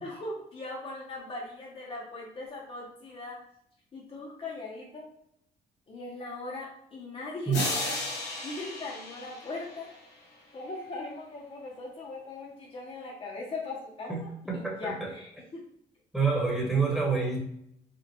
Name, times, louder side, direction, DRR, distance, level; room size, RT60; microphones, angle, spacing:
voice 1, 0.0-3.4 3.9-5.1 5.9-9.9 10.5-15.6, left 2 dB, 35° left, -3 dB, 0.8 m, -40 dB
sound 1, 7.5-10.2, left 2 dB, 80° left, 1.3 m, -34 dB
voice 2, 14.1-15.1 16.1-17.4, right 5 dB, ahead, -3 dB, 1.1 m, -28 dB
5.0 x 2.4 x 2.9 m, 0.72 s
cardioid pair, 130°, 17 cm